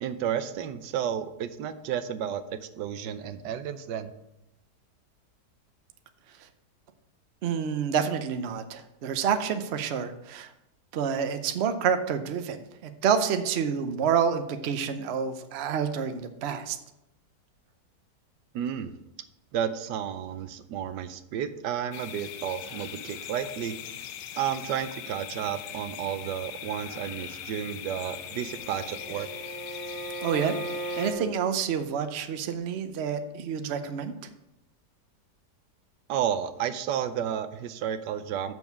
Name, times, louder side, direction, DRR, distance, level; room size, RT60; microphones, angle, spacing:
voice 1, 0.0-4.1 18.5-18.9 19.5-23.8 24.4-29.3 36.1-38.5, right 9 dB, 85° right, 11 dB, 1.3 m, -32 dB
voice 2, 7.4-10.5 10.9-16.8 30.2-30.5 31.0-34.1, right 7 dB, 55° right, 8 dB, 0.8 m, -28 dB
sound 1, 21.9-31.1, left 10 dB, 90° left, 1.3 m, -40 dB
Bowed string instrument, 28.1-31.3, right 2 dB, 70° right, 2.6 m, -37 dB
7.1 x 6.3 x 5.9 m, 0.86 s
omnidirectional pair, 1.8 m